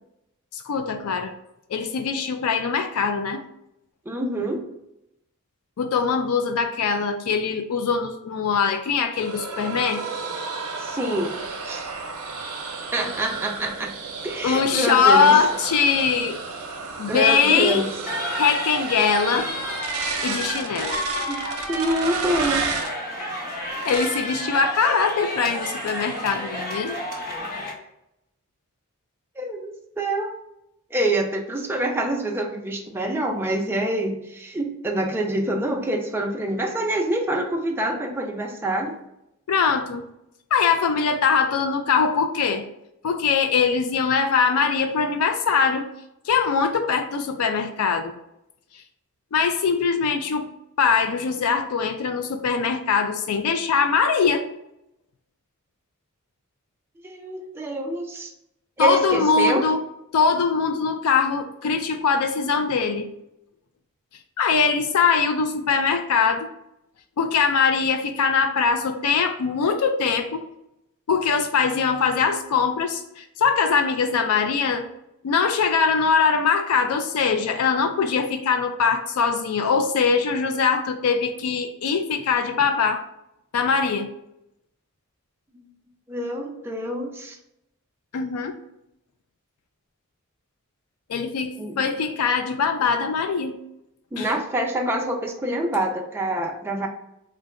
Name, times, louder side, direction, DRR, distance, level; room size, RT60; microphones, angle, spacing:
voice 1, 0.5-1.3 1.7-3.4 5.8-10.0 14.4-16.4 17.0-17.9 18.4-19.5 20.2-21.0 23.9-27.0 39.5-40.0 40.5-42.6 43.0-45.9 46.2-48.1 49.3-50.5 50.8-54.5 58.8-59.8 60.1-63.1 64.4-66.5 67.2-70.5 71.1-74.9 75.2-83.0 83.5-84.1 88.1-88.5 91.1-93.6 94.2-94.3, left 5 dB, 85° left, 7 dB, 0.4 m, -22 dB
voice 2, 4.1-4.6 10.8-11.4 11.6-11.9 12.9-13.9 14.2-15.4 17.1-17.9 21.3-21.4 21.7-22.7 29.4-30.4 30.9-38.9 57.0-58.3 58.8-59.6 86.1-87.4 91.6-91.8 94.1-96.9, right 1 dB, 10° right, 0 dB, 0.5 m, -26 dB
sound 1, 9.2-23.0 23.7-24.3 24.7-25.1 25.4-26.1, right 4 dB, 80° right, 0.7 m, -32 dB
sound 2, 18.1-27.7, equal, 40° left, 1.1 m, -31 dB
3.8 x 2.2 x 3.6 m, 0.83 s
head